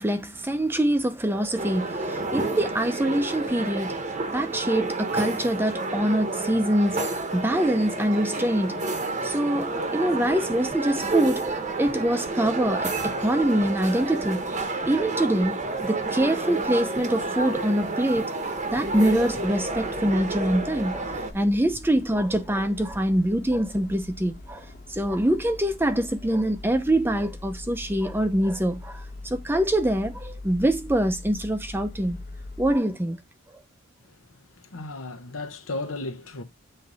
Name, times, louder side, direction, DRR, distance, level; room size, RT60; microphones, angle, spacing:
voice 1, 0.0-4.0 4.3-8.8 9.2-18.3 18.7-32.2 32.6-33.2, right 1 dB, 10° right, 0.5 m, -25 dB
sound 1, 1.6-21.3, right 2 dB, 35° right, 0.9 m, -30 dB
sound 2, 10.1-23.9, equal, 15° left, 1.2 m, -46 dB
sound 3, 18.7-32.8, left 2 dB, 45° left, 1.0 m, -42 dB
voice 2, 34.3-36.4, left 2 dB, 80° left, 1.0 m, -35 dB
7.7 x 3.2 x 3.9 m
head